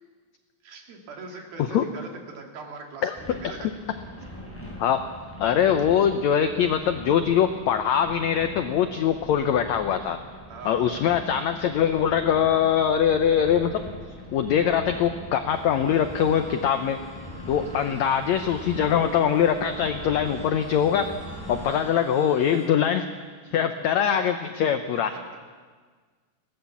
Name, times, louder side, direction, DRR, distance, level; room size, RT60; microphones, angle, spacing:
voice 1, 0.6-3.7 10.5-11.1 17.6-18.0 21.5-21.9 23.4-23.7 25.0-25.1, right 3 dB, 80° right, 2 dB, 4.3 m, -42 dB
sound 1, 3.2-21.7, equal, 5° left, 6.3 m, -42 dB
voice 2, 4.8-5.1 5.4-10.2 10.6-13.8 14.3-17.0 17.5-21.1 21.5-23.1 23.5-25.1, left 8 dB, 85° left, 8 dB, 1.6 m, -22 dB
sound 2, 15.5-22.7, equal, 45° right, 7.6 m, -48 dB
22.0 x 17.5 x 7.2 m, 1.5 s
omnidirectional pair, 4.2 m